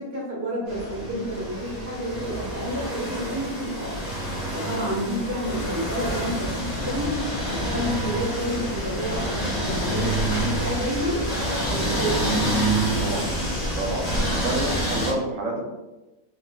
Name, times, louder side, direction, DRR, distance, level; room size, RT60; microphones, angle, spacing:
voice 1, 0.0-4.0 4.5-7.2 7.5-11.2 11.7-12.4, equal, 20° right, -4 dB, 0.5 m, -30 dB
sound 1, 0.7-15.1, right 1 dB, 40° left, 1.3 m, -28 dB
sound 2, 5.4-14.8, equal, 60° left, 0.8 m, -33 dB
voice 2, 13.8-15.7, right 2 dB, 70° right, 0 dB, 0.9 m, -29 dB
3.6 x 2.3 x 2.2 m, 1.1 s
omnidirectional pair, 1.5 m